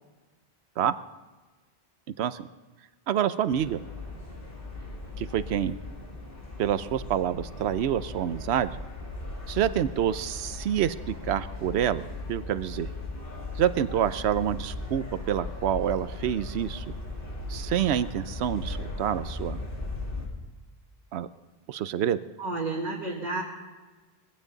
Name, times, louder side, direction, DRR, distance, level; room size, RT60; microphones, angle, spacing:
voice 1, 2.2-2.5 3.1-3.8 5.2-5.7 6.6-8.7 9.5-12.9 13.6-16.8 17.5-19.6 21.1-21.3 21.7-22.2, right 10 dB, 85° right, 14 dB, 0.9 m, -27 dB
sound 1, 3.5-20.3, left 2 dB, 55° left, 2.8 m, -38 dB
voice 2, 22.4-23.4, right 2 dB, 45° right, -2 dB, 1.7 m, -31 dB
21.0 x 16.0 x 3.9 m, 1.3 s
omnidirectional pair, 1.1 m